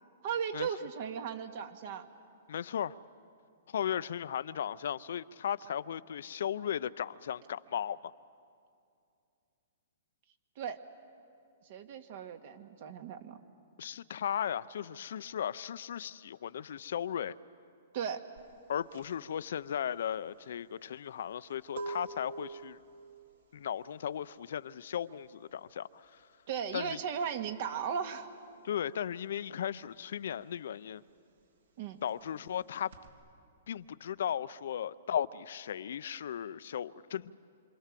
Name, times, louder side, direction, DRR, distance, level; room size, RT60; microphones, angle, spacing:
voice 1, 0.2-2.1 10.6-10.8 11.7-13.4 17.9-18.2 26.5-28.3 31.8-32.0, right 7 dB, 55° right, 7 dB, 2.0 m, -36 dB
voice 2, 2.5-3.0 3.7-8.1 13.8-17.4 18.7-22.8 23.5-26.3 26.7-27.0 28.6-31.0 32.0-32.9 33.7-37.3, left 9 dB, 70° left, 15 dB, 0.6 m, -36 dB
sound 1, 18.4-28.6 28.9-33.1, right 3 dB, 75° right, 3.4 m, -48 dB
27.0 x 26.5 x 7.6 m, 2.5 s
hypercardioid pair, 140°, 0 cm